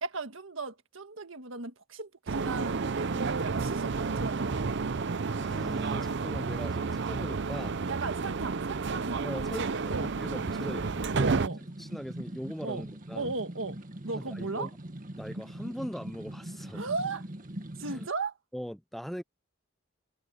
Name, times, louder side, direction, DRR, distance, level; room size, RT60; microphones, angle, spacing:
voice 1, 0.0-4.8 7.9-10.1 11.2-11.6 12.6-12.8 13.1-13.8 14.0-14.7 16.7-17.2 17.8-18.4, right 3 dB, 80° right, 1.6 m, -36 dB
sound 1, 2.3-11.5, right 4 dB, 60° right, 0.6 m, -31 dB
voice 2, 5.4-7.8 9.2-11.4 11.8-13.3 14.1-14.7 15.1-16.8 17.8-18.1 18.5-19.2, equal, ahead, 0.5 m, -40 dB
sound 2, 9.8-18.1, right 1 dB, 45° right, 1.9 m, -42 dB
head